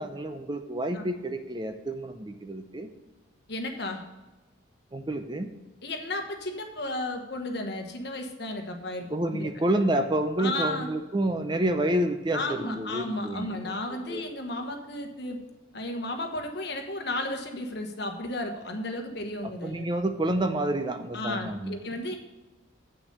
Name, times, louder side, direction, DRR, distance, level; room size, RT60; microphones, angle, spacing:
voice 1, 0.0-2.9 4.9-5.5 9.1-14.2 19.4-21.8, right 1 dB, 25° right, 8 dB, 0.5 m, -29 dB
voice 2, 3.5-4.0 5.8-9.1 9.3-9.6 10.4-10.9 12.3-15.4 15.7-19.8 21.1-22.2, left 1 dB, 55° left, 4 dB, 1.3 m, -33 dB
8.2 x 6.0 x 6.6 m, 1.1 s
head